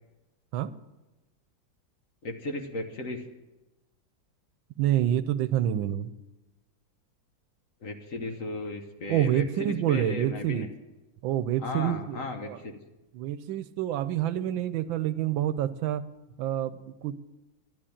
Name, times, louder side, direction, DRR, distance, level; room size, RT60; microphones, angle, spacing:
voice 1, 2.2-3.2 7.8-10.7 11.6-12.8, left 2 dB, 50° left, 5 dB, 1.4 m, -35 dB
voice 2, 4.8-6.1 9.1-10.7 11.2-12.6 13.1-16.0 16.4-17.2, right 11 dB, 90° right, 14 dB, 1.4 m, -27 dB
12.5 x 10.0 x 8.6 m, 1.1 s
omnidirectional pair, 2.1 m